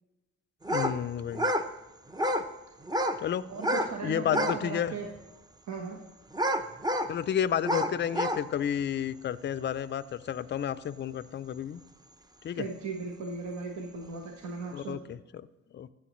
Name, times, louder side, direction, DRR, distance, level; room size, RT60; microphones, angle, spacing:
sound 1, 0.6-1.0 1.3-1.7 2.1-2.5 2.8-3.2 3.6-3.9 4.3-4.6 5.2-5.3 6.3-7.1 7.6-8.4, equal, 15° right, 0.6 m, -28 dB
voice 1, 0.7-1.5 3.2-3.5 4.0-4.9 7.1-11.8 12.4-12.6 14.7-15.4 15.7-15.9, left 9 dB, 40° left, 15 dB, 0.4 m, -31 dB
voice 2, 3.5-5.1 5.7-6.0 12.5-15.0, right 4 dB, 70° right, 1 dB, 1.2 m, -37 dB
15.0 x 7.1 x 3.1 m, 1.1 s
cardioid pair, 90°, 30 cm